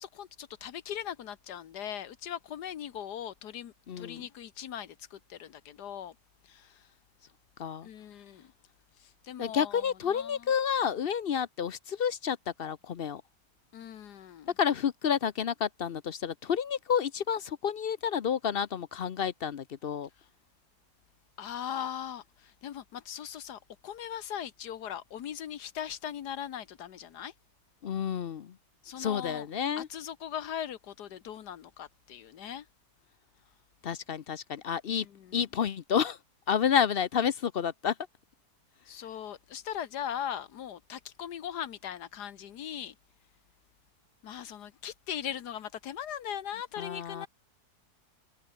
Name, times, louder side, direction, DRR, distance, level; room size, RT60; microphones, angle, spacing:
voice 1, 0.0-6.1 6.4-6.9 7.8-8.5 9.0-10.5 13.7-14.5 21.4-27.3 28.8-29.5 29.8-32.6 34.9-35.4 38.9-42.9 44.2-47.3, left 9 dB, 85° left, 1.6 m, -40 dB
voice 2, 3.9-4.2 7.6-7.9 9.4-13.2 14.6-20.1 27.8-28.5 29.0-29.9 33.8-35.1 35.3-36.2 36.5-37.9 46.8-47.3, left 8 dB, 55° left, 0.6 m, -30 dB
omnidirectional pair, 1.7 m